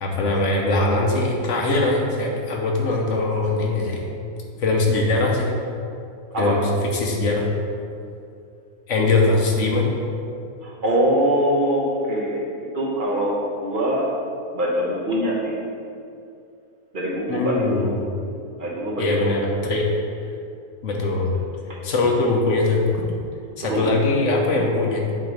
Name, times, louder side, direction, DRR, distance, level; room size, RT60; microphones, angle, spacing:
voice 1, 0.0-4.1 4.6-5.5 6.4-6.6 6.9-7.5 8.9-9.9 17.3-18.0 19.0-19.9 20.8-21.3 21.8-22.8 23.6-25.0, left 2 dB, 60° left, 0 dB, 1.1 m, -21 dB
voice 2, 10.6-12.4 12.7-14.1 14.5-15.5 16.9-17.9 18.6-19.3 21.7-21.8 23.6-24.2, equal, 40° right, -3 dB, 1.0 m, -23 dB
7.6 x 3.1 x 5.1 m, 2.5 s
omnidirectional pair, 1.6 m